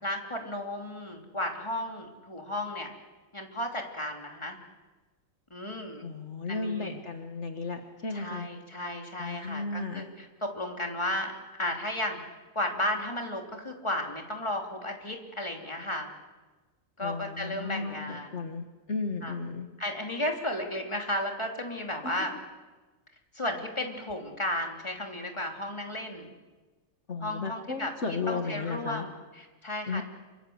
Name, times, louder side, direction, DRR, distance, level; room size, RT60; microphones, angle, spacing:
voice 1, 0.0-2.9 3.3-4.6 5.5-6.1 6.5-6.9 8.1-11.3 11.6-12.2 12.5-16.1 17.0-18.5 19.2-19.3 19.8-22.3 23.3-26.3 27.2-27.9 28.3-30.0, left 1 dB, 20° left, 2 dB, 3.2 m, -34 dB
voice 2, 6.0-8.5 9.2-10.1 17.0-19.7 22.0-22.3 27.1-29.1 29.9-30.0, left 4 dB, 55° left, 4 dB, 1.9 m, -34 dB
27.5 x 25.0 x 8.0 m, 1.3 s
omnidirectional pair, 1.4 m